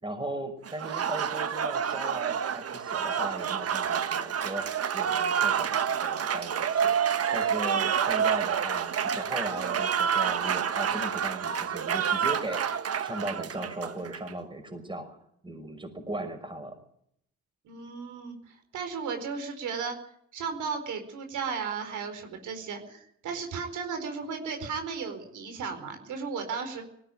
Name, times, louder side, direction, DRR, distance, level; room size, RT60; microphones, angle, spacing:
voice 1, 0.0-4.7 4.9-6.9 7.3-12.6 13.0-15.2 15.4-16.8, right 1 dB, 15° right, 6 dB, 5.9 m, -37 dB
Applause, 0.7-14.3, right 8 dB, 50° right, 1.4 m, -28 dB
voice 2, 17.6-20.0 20.3-26.9, right 5 dB, 80° right, 6 dB, 4.6 m, -35 dB
19.0 x 16.5 x 9.2 m, 0.73 s
cardioid pair, 90°, 30 cm